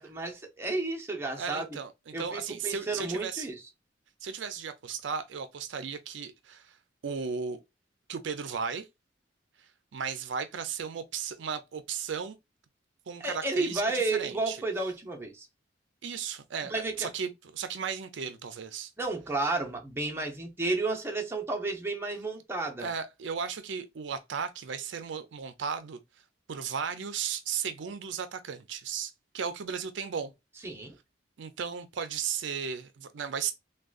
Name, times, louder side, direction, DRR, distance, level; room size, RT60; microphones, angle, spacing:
voice 1, 0.0-1.7 2.1-3.6 13.2-15.5 16.7-17.1 19.0-22.9 30.6-31.0, right 2 dB, 15° right, 0.7 m, -32 dB
voice 2, 1.4-3.5 4.2-6.8 7.0-7.6 8.1-8.9 9.9-12.4 13.1-14.6 16.0-18.9 22.8-26.0 26.5-30.3 31.4-33.5, right 6 dB, 70° right, 0.4 m, -35 dB
3.6 x 2.2 x 2.4 m
head